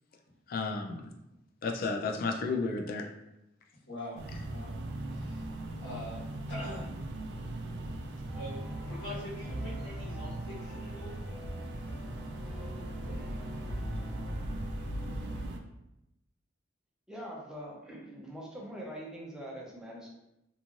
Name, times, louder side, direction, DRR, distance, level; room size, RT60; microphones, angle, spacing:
voice 1, 0.5-1.1 1.6-3.1, left 3 dB, 50° left, 4 dB, 0.3 m, -32 dB
voice 2, 3.9-4.2 4.5-4.8 5.1-6.2 6.5-6.9 8.3-8.6 8.9-11.2, left 1 dB, 75° left, -7 dB, 1.2 m, -43 dB
sound 1, 4.2-15.6, right 1 dB, 65° right, 0.3 m, -40 dB
sound 2, 8.3-15.5, equal, 45° right, 0.8 m, -42 dB
voice 3, 17.1-20.1, equal, 5° right, -3 dB, 0.6 m, -43 dB
3.0 x 2.5 x 2.4 m, 0.88 s
head